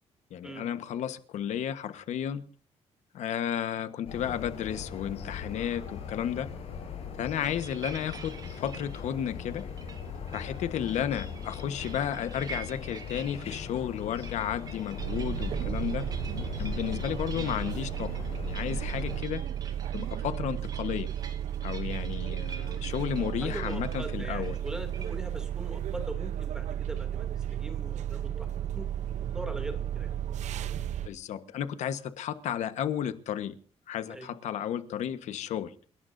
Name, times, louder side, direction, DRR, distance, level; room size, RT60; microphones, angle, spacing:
voice 1, 0.3-2.4 3.1-6.5 7.2-9.7 10.3-16.1 16.6-19.4 19.9-21.1 21.6-24.6 31.0-33.6 33.9-35.7, left 9 dB, 80° left, 10 dB, 1.3 m, -33 dB
sound 1, 4.1-19.2, left 6 dB, 60° left, 7.9 m, -39 dB
sound 2, 7.4-25.1, right 5 dB, 35° right, 2.6 m, -48 dB
sound 3, 15.0-31.1, right 10 dB, 80° right, 0.8 m, -34 dB
voice 2, 23.4-27.3 27.5-28.5 28.7-28.9 29.3-30.1 34.1-34.3, equal, 5° right, 5 dB, 2.7 m, -41 dB
29.0 x 18.0 x 2.7 m, 0.42 s
cardioid pair, 175°, 12 cm